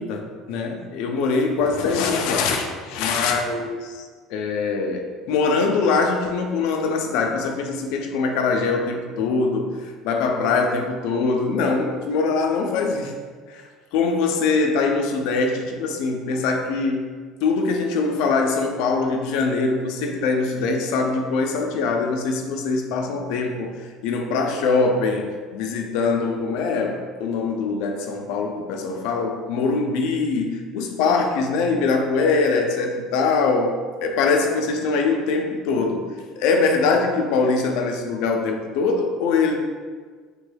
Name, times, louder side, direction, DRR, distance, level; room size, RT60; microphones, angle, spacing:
voice 1, 0.0-13.1 13.5-17.0 17.4-36.1 36.4-39.6, left 4 dB, 75° left, 3 dB, 0.4 m, -23 dB
3.3 x 2.2 x 3.2 m, 1.5 s
cardioid pair, 155°, 0 cm